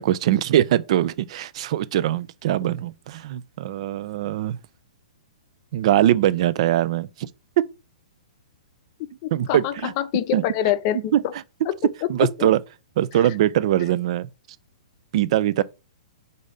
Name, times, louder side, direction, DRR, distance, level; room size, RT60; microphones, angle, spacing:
voice 1, 0.0-4.6 5.7-7.3 7.6-7.7 9.3-9.9 10.3-10.4 11.1-11.2 12.1-12.6 13.0-14.3 15.1-15.6, right 12 dB, 55° right, 0.3 m, -22 dB
voice 2, 9.2-11.1, left 12 dB, 40° left, 0.5 m, -25 dB
4.0 x 2.7 x 4.9 m
hypercardioid pair, 120°, 4 cm